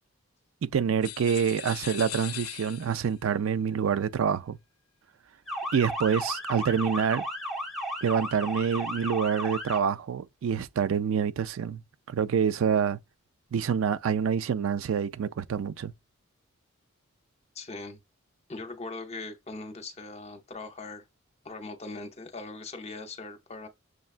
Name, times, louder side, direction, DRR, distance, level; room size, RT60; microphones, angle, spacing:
voice 1, 0.7-4.6 5.7-7.2 8.0-11.8 12.1-13.0 13.5-15.9, right 7 dB, 65° right, 0.3 m, -27 dB
sound 1, 1.0-3.2, left 14 dB, 70° left, 0.4 m, -40 dB
Motor vehicle (road) / Siren, 5.5-9.8, equal, ahead, 0.9 m, -34 dB
voice 2, 17.5-18.0 18.5-21.0 21.4-23.7, left 3 dB, 30° left, 0.6 m, -40 dB
6.4 x 2.2 x 2.4 m
head